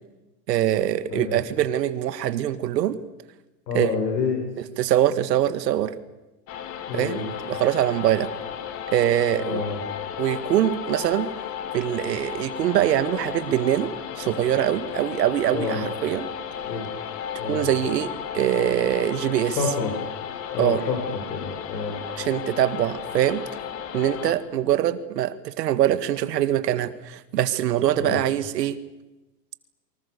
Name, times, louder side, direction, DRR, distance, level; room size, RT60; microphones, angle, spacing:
voice 1, 0.5-3.0 3.7-3.9 4.8-5.9 6.9-8.3 8.9-9.6 10.2-11.3 11.7-13.9 14.2-16.3 17.5-19.6 20.6-20.8 22.2-23.4 23.9-28.8, right 12 dB, 75° right, 12 dB, 2.0 m, -23 dB
voice 2, 3.7-4.4 6.9-7.3 9.3-9.8 15.5-15.8 16.6-16.9 17.4-17.7 19.6-19.9 20.5-22.0 27.9-28.2, left 5 dB, 90° left, 1 dB, 8.0 m, -28 dB
sound 1, 6.5-24.3, left 9 dB, 30° left, 2.5 m, -34 dB
29.0 x 25.0 x 6.9 m, 1.0 s
supercardioid pair, 155°, 50 cm